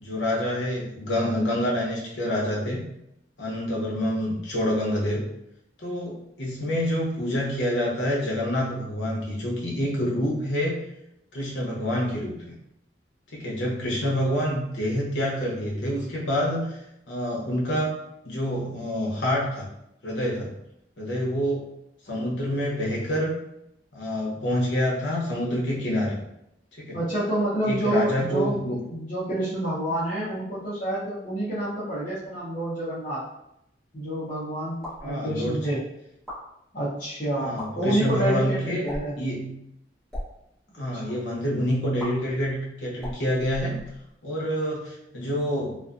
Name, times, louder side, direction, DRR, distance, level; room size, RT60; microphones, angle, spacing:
voice 1, 0.0-2.8 3.4-5.3 5.8-10.8 11.3-12.5 13.3-16.8 17.1-17.9 18.2-19.7 20.0-20.5 21.0-21.6 22.0-23.4 23.9-26.2 26.8-27.0 27.6-28.8 35.0-35.6 37.4-38.8 39.2-39.5 40.7-43.8 44.2-45.8, equal, 90° left, -4 dB, 0.8 m, -27 dB
voice 2, 26.9-33.3 33.9-35.8 36.7-39.2 40.9-41.2, right 1 dB, 45° left, -12 dB, 0.8 m, -28 dB
sound 1, 34.8-35.1 36.1-36.4 37.4-37.7 38.8-39.2 40.0-40.3 42.0-42.1 43.0-44.1, left 1 dB, ahead, 1.0 m, -37 dB
2.5 x 2.4 x 2.4 m, 0.81 s
head